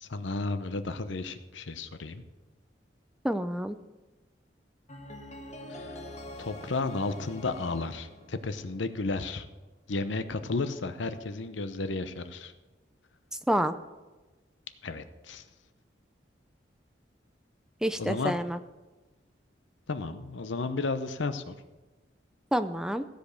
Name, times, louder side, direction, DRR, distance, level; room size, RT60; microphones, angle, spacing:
voice 1, 0.0-2.2 5.7-6.0 6.4-9.5 9.9-12.5 14.8-15.4 18.0-18.3 19.9-21.5, left 3 dB, 85° left, 10 dB, 0.8 m, -33 dB
voice 2, 3.2-3.8 13.5-13.7 17.8-18.6 22.5-23.0, equal, 5° right, 10 dB, 0.4 m, -28 dB
sound 1, 4.9-9.0, left 1 dB, 35° left, 1.4 m, -45 dB
15.5 x 5.2 x 6.5 m, 1.2 s
head